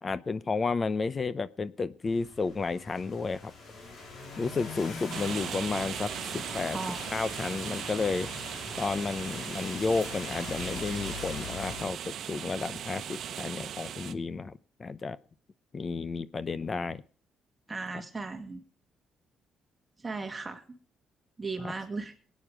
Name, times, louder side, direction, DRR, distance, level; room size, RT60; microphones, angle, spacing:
voice 1, 0.0-3.5 4.4-6.8 7.1-8.3 8.8-14.5 14.8-15.2 15.7-17.0 21.6-21.7, left 4 dB, 30° left, 16 dB, 0.6 m, -32 dB
sound 1, 2.0-11.8, left 4 dB, 55° left, 4.4 m, -42 dB
sound 2, 5.1-14.1, right 9 dB, 60° right, 1.0 m, -38 dB
voice 2, 17.7-18.6 20.0-20.6 21.4-22.1, right 3 dB, 20° right, 5 dB, 2.1 m, -36 dB
22.0 x 9.3 x 5.0 m, 0.41 s
cardioid pair, 135°, 0 cm